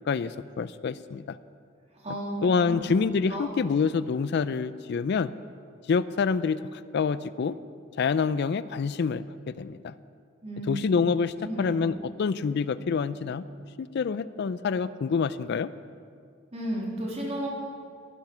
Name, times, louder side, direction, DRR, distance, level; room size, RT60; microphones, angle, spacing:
voice 1, 0.1-1.4 2.4-5.3 5.9-7.6 8.0-9.9 10.7-13.5 13.8-15.7, left 5 dB, 60° left, 16 dB, 0.4 m, -27 dB
voice 2, 1.9-3.0 3.3-3.5 10.4-11.0 11.4-11.8 16.5-17.5, right 1 dB, 35° right, -2 dB, 3.0 m, -33 dB
15.0 x 10.5 x 6.0 m, 2.3 s
head